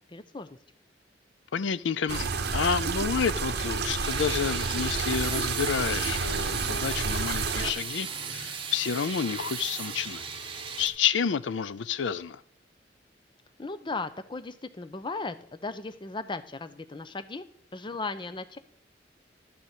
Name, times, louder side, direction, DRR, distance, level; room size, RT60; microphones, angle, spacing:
voice 1, 0.1-0.5 13.6-17.5 17.7-18.6, left 3 dB, 25° left, 0.6 m, -36 dB
voice 2, 1.5-10.2 10.8-12.4, left 7 dB, 85° left, 0.5 m, -29 dB
sound 1, 2.1-7.7, right 4 dB, 60° right, 0.9 m, -30 dB
sound 2, 4.0-10.9, right 6 dB, 30° right, 1.3 m, -36 dB
12.0 x 4.2 x 8.0 m
head